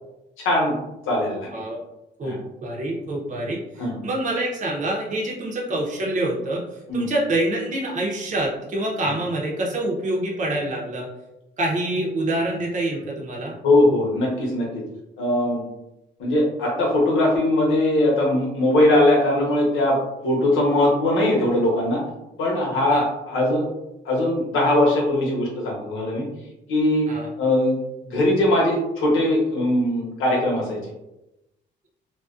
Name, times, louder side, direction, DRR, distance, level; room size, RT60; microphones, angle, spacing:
voice 1, 0.4-0.7 1.1-1.5 2.2-2.4 3.8-3.9 6.9-7.1 13.6-14.8 15.2-15.6 16.2-20.0 20.2-22.0 22.4-23.6 24.0-26.2 26.7-27.1 27.4-27.8 28.0-30.8, left 1 dB, 80° left, -2 dB, 0.9 m, -20 dB
voice 2, 2.2-11.1 11.6-13.5 22.9-23.0 27.1-27.3, right 1 dB, 40° right, -2 dB, 0.6 m, -26 dB
2.4 x 2.2 x 2.4 m, 0.92 s
cardioid pair, 90°, 20 cm